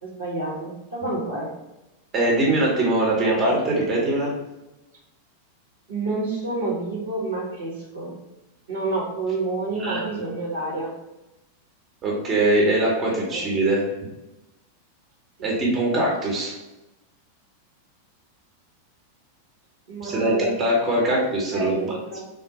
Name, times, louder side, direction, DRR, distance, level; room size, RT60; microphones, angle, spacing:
voice 1, 0.0-1.5 5.9-8.1 8.7-10.9 13.1-13.4 15.4-15.5 19.9-20.5 21.1-21.3 21.5-22.3, right 3 dB, 70° right, -4 dB, 1.4 m, -29 dB
voice 2, 2.1-4.3 9.8-10.0 12.0-13.8 15.4-16.5 20.0-21.9, right 1 dB, 25° right, -3 dB, 1.0 m, -22 dB
3.6 x 2.1 x 4.1 m, 0.97 s
figure-of-eight pair, 90°, 0 cm